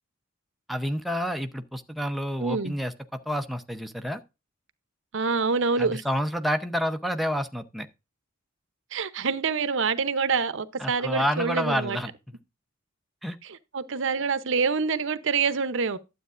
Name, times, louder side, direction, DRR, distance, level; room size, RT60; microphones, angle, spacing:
voice 1, 0.7-4.2 5.8-7.9 10.8-12.4 13.2-13.4, equal, ahead, 0.7 m, -29 dB
voice 2, 2.4-2.7 5.1-6.0 8.9-12.0 13.4-16.0, right 5 dB, 65° right, 0.7 m, -26 dB
12.0 x 8.0 x 2.5 m
head